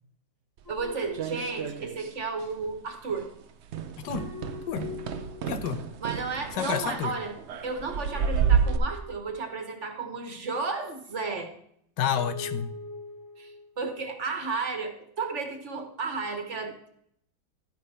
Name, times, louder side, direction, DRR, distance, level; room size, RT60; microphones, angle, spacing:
sound 1, 0.7-2.0 4.2-5.9 8.2-9.9 12.2-13.7, left 3 dB, 15° left, 0.8 m, -43 dB
voice 1, 0.7-3.3 6.0-7.4 7.6-11.5 13.4-16.9, right 4 dB, 45° right, 5 dB, 1.4 m, -33 dB
sound 2, 0.7-2.2 2.4-2.8 3.1-3.3 3.7-8.8, right 7 dB, 65° right, 0.7 m, -30 dB
voice 2, 4.0-4.3 4.7-4.8 5.5-5.8 6.6-7.1 12.0-12.7, left 8 dB, 80° left, 10 dB, 1.4 m, -29 dB
12.0 x 9.4 x 3.3 m, 0.70 s
omnidirectional pair, 1.9 m